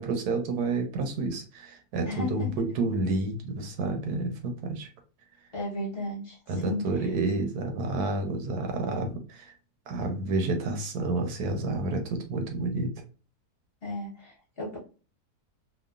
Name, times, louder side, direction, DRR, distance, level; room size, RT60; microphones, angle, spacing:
voice 1, 0.0-4.9 6.5-9.5 9.9-12.9, right 2 dB, 80° right, 5 dB, 1.2 m, -29 dB
voice 2, 5.5-6.4 6.6-7.1 13.8-14.8, left 1 dB, 40° left, -3 dB, 1.1 m, -34 dB
3.0 x 2.3 x 2.3 m, 0.35 s
omnidirectional pair, 1.7 m